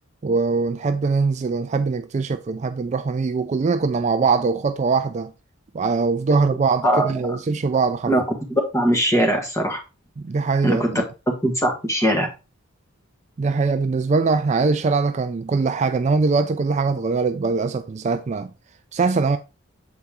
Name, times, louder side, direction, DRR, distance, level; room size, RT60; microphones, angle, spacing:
voice 1, 0.2-5.3 5.7-8.1 10.2-11.0 13.4-18.5 18.9-19.4, right 4 dB, 35° right, 0.3 m, -22 dB
voice 2, 6.8-7.4 8.1-8.2 8.7-9.8 10.6-10.9 11.4-12.3, right 1 dB, 15° left, 1.5 m, -20 dB
7.1 x 4.2 x 3.6 m
head